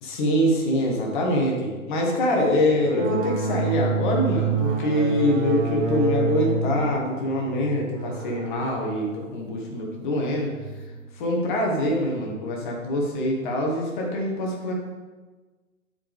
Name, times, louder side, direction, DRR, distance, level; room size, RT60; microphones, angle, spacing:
voice 1, 0.0-10.5 11.1-14.7, left 1 dB, 35° left, -1 dB, 1.7 m, -24 dB
sound 1, 2.8-10.9, right 4 dB, 65° right, 1.5 m, -28 dB
11.5 x 5.0 x 3.6 m, 1.3 s
hypercardioid pair, 140°, 41 cm